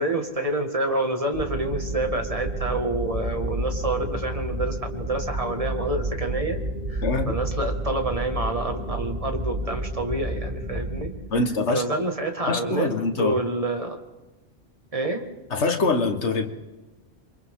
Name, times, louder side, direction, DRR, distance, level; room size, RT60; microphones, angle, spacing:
voice 1, 0.0-6.6 6.9-11.1 11.7-12.9 13.2-14.0 14.9-15.2, right 2 dB, 30° right, 4 dB, 2.1 m, -28 dB
sound 1, 1.3-11.1, right 1 dB, 65° right, 4.5 m, -30 dB
voice 2, 7.0-7.3 11.3-11.8 12.5-13.4 15.5-16.5, left 3 dB, 70° left, 6 dB, 1.8 m, -24 dB
28.5 x 24.0 x 3.8 m, 1.1 s
omnidirectional pair, 1.2 m